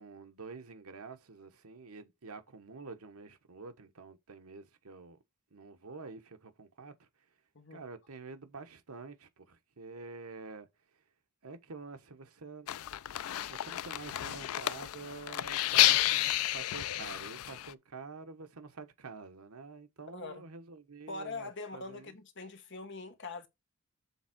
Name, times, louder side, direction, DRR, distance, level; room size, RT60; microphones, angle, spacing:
voice 1, 0.0-5.2 5.5-7.1 7.7-10.7 11.4-12.7 13.5-22.1, right 4 dB, 80° right, 1.1 m, -48 dB
sound 1, 12.7-17.7, left 15 dB, 75° left, 0.3 m, -30 dB
voice 2, 20.1-20.4 21.1-23.5, left 3 dB, 50° left, 1.1 m, -43 dB
7.1 x 3.5 x 5.9 m
head